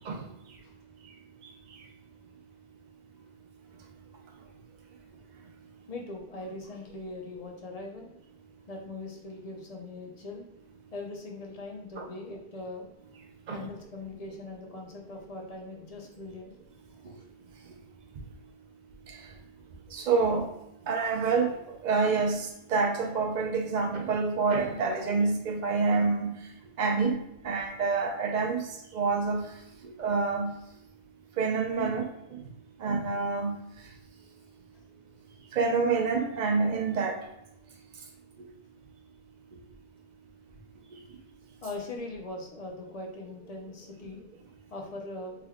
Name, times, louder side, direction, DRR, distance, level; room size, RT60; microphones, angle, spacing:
voice 1, 5.9-8.1 8.7-10.5 10.9-12.9 13.5-16.6 17.0-17.1 41.6-44.2 44.7-45.4, left 2 dB, 45° left, 1 dB, 0.6 m, -41 dB
voice 2, 19.9-20.5 20.9-26.3 26.8-27.2 27.4-28.6 28.9-29.5 29.8-30.5 31.4-32.4 32.8-33.6 35.5-37.2, right 4 dB, 55° right, 3 dB, 0.6 m, -27 dB
3.3 x 2.2 x 3.4 m, 0.81 s
omnidirectional pair, 1.1 m